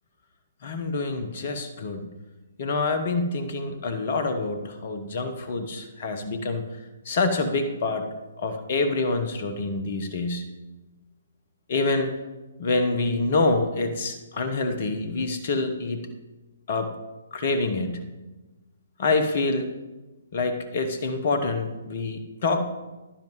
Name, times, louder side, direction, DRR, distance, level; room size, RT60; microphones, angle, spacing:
voice 1, 0.6-2.0 2.6-6.6 7.0-8.1 8.4-10.4 11.7-12.2 12.6-16.0 16.7-16.9 17.3-18.0 19.0-19.7 20.3-22.6, left 3 dB, 40° left, 9 dB, 1.0 m, -26 dB
10.5 x 10.0 x 3.1 m, 1.1 s
figure-of-eight pair, 130°, 0 cm